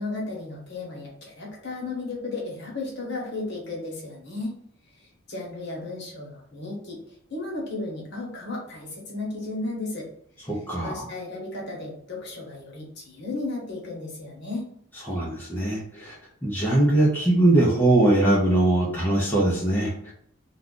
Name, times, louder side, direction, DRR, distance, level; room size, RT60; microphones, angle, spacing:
voice 1, 0.0-4.6 5.0-7.0 7.3-10.1 10.8-14.7, left 2 dB, 50° left, -3 dB, 1.0 m, -34 dB
voice 2, 10.5-11.1 15.0-16.2 16.4-20.1, right 1 dB, 10° left, -6 dB, 0.6 m, -21 dB
2.4 x 2.3 x 3.7 m, 0.66 s
head